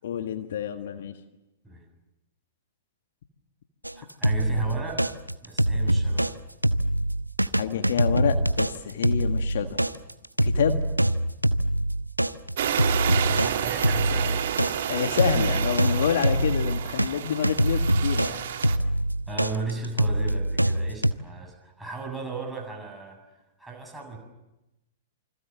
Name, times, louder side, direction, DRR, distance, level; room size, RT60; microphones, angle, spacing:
voice 1, 0.0-1.2 7.5-9.8 10.4-10.8 14.9-18.4, left 8 dB, 55° left, 7 dB, 1.7 m, -28 dB
sound 1, 3.8-6.3 6.6-17.1 17.4-21.1, right 1 dB, 90° right, 0.9 m, -24 dB
voice 2, 4.0-5.1 5.4-6.4 13.2-14.8 16.8-16.9 18.7-18.8 19.3-23.2 23.6-24.2, right 3 dB, 5° right, 1 dB, 7.5 m, -36 dB
sound 2, 12.6-18.8, right 9 dB, 55° right, 1.8 m, -30 dB
28.5 x 25.5 x 7.4 m, 0.98 s
figure-of-eight pair, 105°, 0 cm